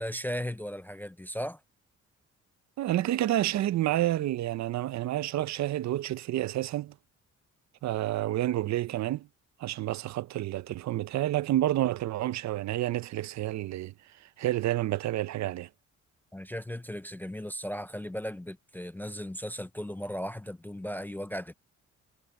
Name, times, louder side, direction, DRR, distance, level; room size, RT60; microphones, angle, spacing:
voice 1, 0.0-1.6 16.3-21.5, equal, 5° left, 0.4 m, -36 dB
voice 2, 2.8-6.9 7.8-9.3 9.6-13.9 14.4-15.7, right 14 dB, 70° right, 0.6 m, -29 dB
cardioid pair, 125°, 29 cm